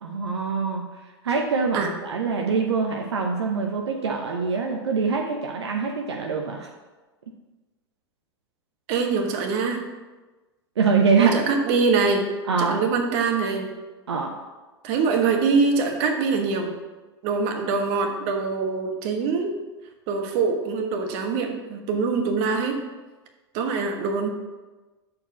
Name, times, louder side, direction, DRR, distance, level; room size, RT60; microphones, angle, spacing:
voice 1, 0.0-0.8 1.2-6.7 10.8-11.4 12.5-12.8 14.1-14.3, right 5 dB, 75° right, 1 dB, 0.8 m, -24 dB
voice 2, 8.9-9.8 11.2-12.3 12.6-13.7 14.8-16.7 17.2-19.6 20.1-22.8 23.5-24.3, right 4 dB, 50° right, 4 dB, 1.3 m, -24 dB
6.7 x 4.7 x 6.8 m, 1.2 s
figure-of-eight pair, 95°, 14 cm